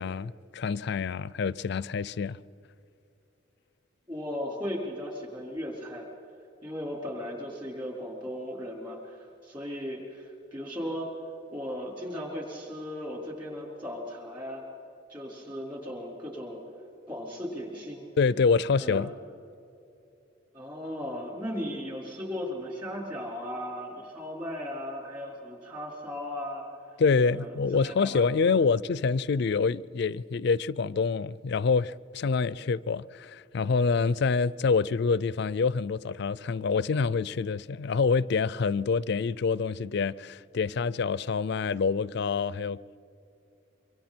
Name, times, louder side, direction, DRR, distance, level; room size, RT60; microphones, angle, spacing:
voice 1, 0.0-2.4 18.2-19.1 27.0-43.0, left 5 dB, 60° left, 0.4 m, -26 dB
voice 2, 4.1-6.1 6.6-11.1 11.5-14.7 15.1-16.6 17.1-18.0 18.8-19.1 20.5-26.6 27.3-28.3, equal, 25° right, 4.7 m, -37 dB
25.5 x 24.5 x 4.4 m
head